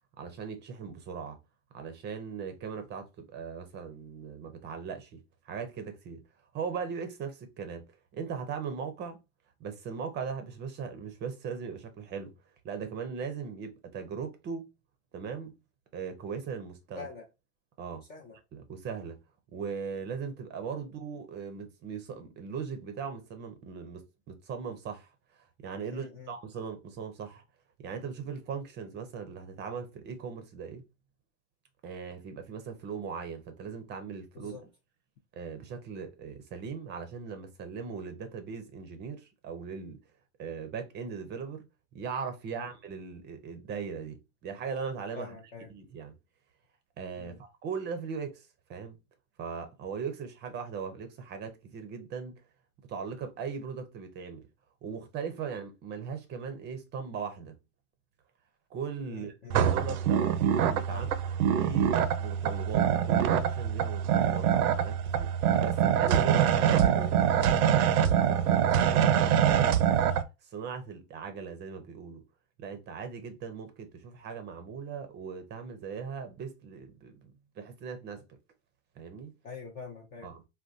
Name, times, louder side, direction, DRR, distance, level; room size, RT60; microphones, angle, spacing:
voice 1, 0.2-1.4 1.7-6.2 6.5-7.9 8.1-9.2 9.6-12.3 12.6-14.7 15.1-15.5 15.9-17.1 17.8-18.1 18.5-19.2 19.5-27.4 27.8-30.8 31.8-34.6 35.4-40.0 40.4-41.7 41.9-45.4 45.7-46.1 47.0-49.0 49.4-52.4 52.9-54.5 54.8-57.6 58.7-59.3 59.6-61.1 61.4-69.8 70.4-72.2 72.6-78.4 79.0-79.3 80.2-80.4, right 6 dB, 25° right, 0.5 m, -39 dB
voice 2, 17.0-17.3 18.1-18.4 25.9-26.3 34.3-34.6 42.5-42.7 45.2-45.7 47.2-47.4 59.1-59.6 60.9-61.1 79.4-80.3, left 5 dB, 25° left, 0.4 m, -44 dB
sound 1, 59.5-70.2, right 9 dB, 80° right, 0.6 m, -25 dB
3.6 x 2.2 x 2.6 m
supercardioid pair, 130°, 43 cm